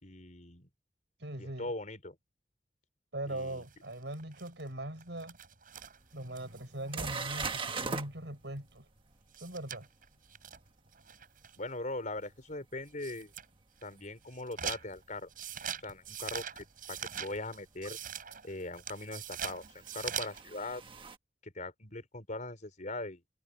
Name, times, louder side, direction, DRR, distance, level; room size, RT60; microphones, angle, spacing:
voice 1, 0.0-0.7 1.4-2.2 3.3-3.6 11.6-13.3 13.8-15.3 15.8-18.0 18.4-20.8 21.4-23.2, left 2 dB, 45° left, 4.7 m, -41 dB
voice 2, 1.2-1.7 3.1-5.4 6.1-8.9 9.4-9.9, right 1 dB, 75° right, 6.1 m, -41 dB
sound 1, 3.4-7.9 8.3-8.4 8.6-8.7 9.0-9.1 9.3-11.7 12.2-12.4 12.9-13.5 13.8-20.4, right 8 dB, 50° right, 6.9 m, -43 dB
sound 2, 5.8-5.9 6.4-6.5 6.9-8.1 13.2-13.3 16.0-16.1 17.8-17.9 19.3-21.2, right 4 dB, 30° right, 1.4 m, -39 dB
head